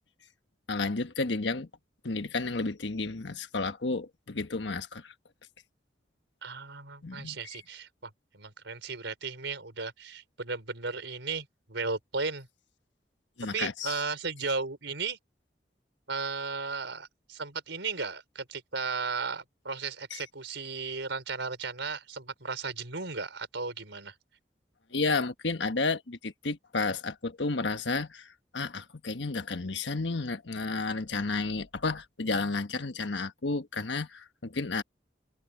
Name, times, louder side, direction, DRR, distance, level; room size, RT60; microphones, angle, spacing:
voice 1, 0.7-1.7 2.0-5.1 7.0-7.6 13.4-13.9 20.1-20.2 24.9-34.8, left 3 dB, 80° left, 1.3 m, -32 dB
voice 2, 6.4-12.5 13.4-15.2 16.1-24.1, right 4 dB, 90° right, 4.9 m, -35 dB
head